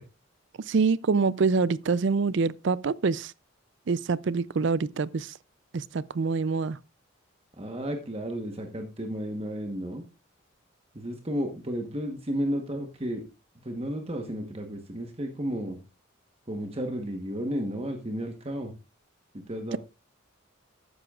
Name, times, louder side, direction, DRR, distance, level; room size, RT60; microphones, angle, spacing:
voice 1, 0.7-3.3 3.9-5.3 5.7-6.8 19.7-19.8, right 4 dB, 55° right, 0.4 m, -25 dB
voice 2, 7.6-10.0 10.9-13.2 13.6-15.8 16.5-18.7 19.3-19.8, equal, 30° right, 1.1 m, -33 dB
13.5 x 10.0 x 2.4 m
head